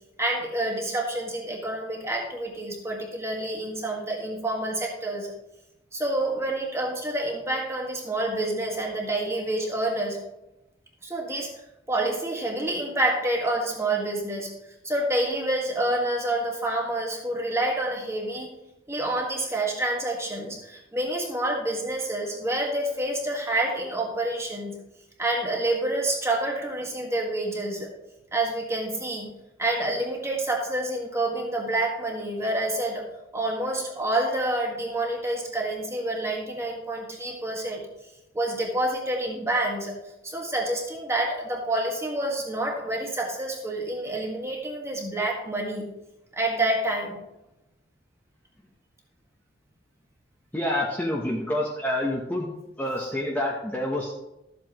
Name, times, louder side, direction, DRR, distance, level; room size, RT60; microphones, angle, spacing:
voice 1, 0.2-5.3 5.9-10.2 11.0-11.5 11.9-14.5 14.8-18.5 18.9-24.8 25.2-27.9 28.3-29.3 29.6-33.0 33.3-37.8 38.3-40.0 40.2-45.9 46.3-47.2, right 1 dB, 15° right, 0 dB, 1.6 m, -28 dB
voice 2, 50.5-52.5 52.8-54.1, left 1 dB, 10° left, -3 dB, 0.9 m, -27 dB
13.0 x 7.6 x 3.0 m, 0.93 s
head